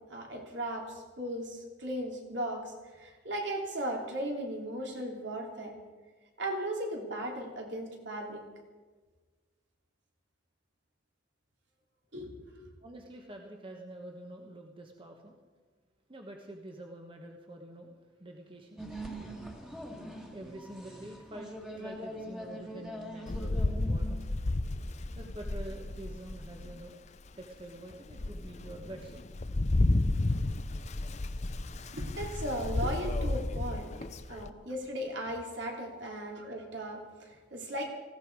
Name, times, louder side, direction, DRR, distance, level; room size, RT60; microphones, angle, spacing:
voice 1, 0.1-5.7 6.4-8.4 12.1-12.3 12.6-12.7 31.7-33.9 34.3-37.8, right 1 dB, 70° right, 0 dB, 3.3 m, -37 dB
voice 2, 12.8-15.4 16.1-18.8 20.3-24.3 25.1-27.0 27.4-29.2, right 1 dB, 25° right, 2 dB, 1.3 m, -47 dB
sound 1, 18.8-24.3, equal, 5° right, 1.8 m, -43 dB
Rain, 23.3-26.8 27.3-27.4 27.9-34.5, left 2 dB, 35° left, 0.6 m, -32 dB
19.0 x 15.5 x 4.8 m, 1.4 s
head